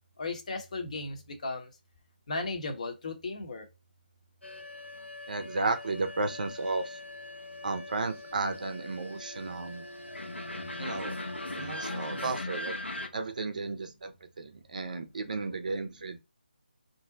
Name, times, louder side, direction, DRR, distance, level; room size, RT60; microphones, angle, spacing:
voice 1, 0.2-1.7 2.3-3.6, left 3 dB, 40° left, 0.9 m, -35 dB
sound 1, 4.4-13.1, left 2 dB, 85° left, 0.9 m, -40 dB
voice 2, 5.3-7.0 7.6-9.9 10.8-11.2 11.5-12.8 13.1-16.2, right 3 dB, 45° right, 0.5 m, -33 dB
2.6 x 2.1 x 3.7 m
figure-of-eight pair, 155°, 6 cm